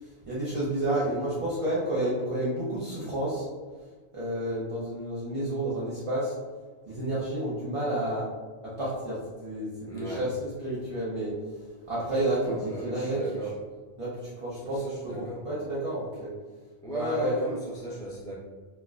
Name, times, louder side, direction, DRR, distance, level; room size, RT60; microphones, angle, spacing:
voice 1, 0.0-3.4 4.1-6.3 6.8-8.3 8.6-13.3 14.0-16.3 16.9-17.4, right 1 dB, 35° right, -8 dB, 0.7 m, -30 dB
voice 2, 9.9-10.2 12.4-13.5 14.8-15.4 16.8-18.3, right 1 dB, 5° left, -6 dB, 0.3 m, -36 dB
4.2 x 2.2 x 2.4 m, 1.4 s
omnidirectional pair, 1.1 m